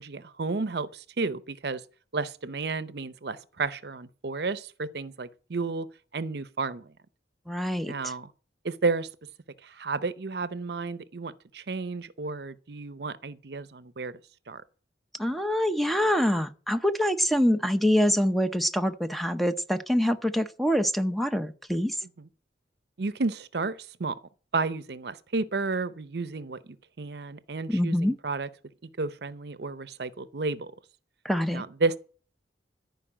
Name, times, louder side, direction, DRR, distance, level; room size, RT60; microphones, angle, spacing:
voice 1, 0.0-1.8 2.1-5.9 6.1-6.9 7.9-8.3 8.6-9.1 9.6-14.1 14.5-14.6 22.0-22.3 23.0-24.2 24.5-28.5 29.0-30.7 31.5-32.0, right 3 dB, 60° right, 0.7 m, -32 dB
voice 2, 7.5-7.9 15.2-22.0 27.7-28.2 31.2-31.6, equal, ahead, 0.6 m, -25 dB
14.0 x 5.3 x 8.8 m
head